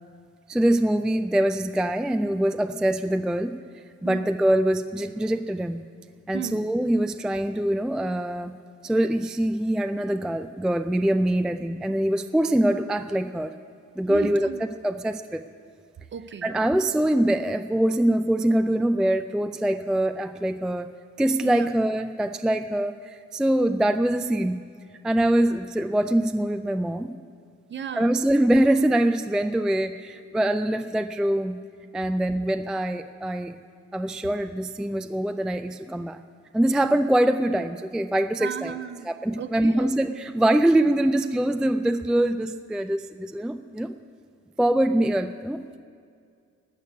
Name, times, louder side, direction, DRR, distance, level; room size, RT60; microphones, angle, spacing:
voice 1, 0.5-3.6 4.0-5.8 6.3-8.6 8.8-13.5 14.0-15.4 16.4-20.9 21.2-24.6 25.0-27.2 27.9-31.6 31.9-33.6 33.9-36.2 36.5-38.7 39.0-43.9 44.6-45.6, right 1 dB, ahead, 9 dB, 0.3 m, -24 dB
voice 2, 14.1-14.6 16.1-16.5 21.4-21.7 27.7-28.1 38.4-39.1 39.4-39.9, right 7 dB, 40° right, 11 dB, 0.7 m, -34 dB
13.0 x 6.6 x 9.5 m, 2.2 s
cardioid pair, 90°, 30 cm